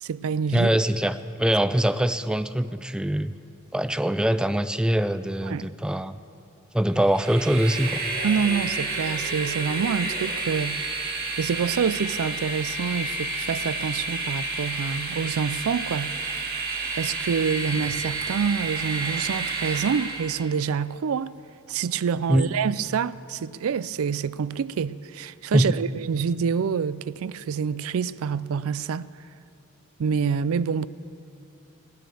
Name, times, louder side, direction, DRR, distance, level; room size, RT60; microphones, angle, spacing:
voice 1, 0.0-0.7 5.5-5.7 8.2-16.4 17.0-21.3 21.7-29.1 30.0-30.9, right 6 dB, 75° right, 0.4 m, -27 dB
voice 2, 0.5-3.3 3.7-6.1 6.7-8.0 22.3-22.5 25.5-25.8, right 1 dB, 5° right, 0.3 m, -23 dB
Train, 7.0-20.5, right 3 dB, 45° right, 2.0 m, -30 dB
18.0 x 9.4 x 6.8 m
head